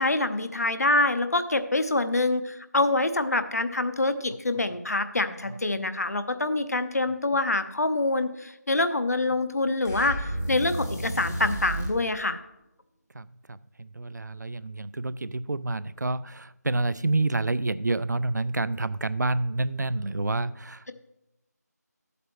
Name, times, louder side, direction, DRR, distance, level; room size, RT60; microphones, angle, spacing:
voice 1, 0.0-12.4, left 2 dB, 60° left, 10 dB, 0.8 m, -26 dB
sound 1, 9.8-12.0, right 1 dB, 10° left, 0.5 m, -32 dB
voice 2, 13.1-20.9, right 2 dB, 75° right, 17 dB, 0.4 m, -28 dB
13.0 x 8.2 x 3.1 m, 0.89 s
figure-of-eight pair, 165°, 9 cm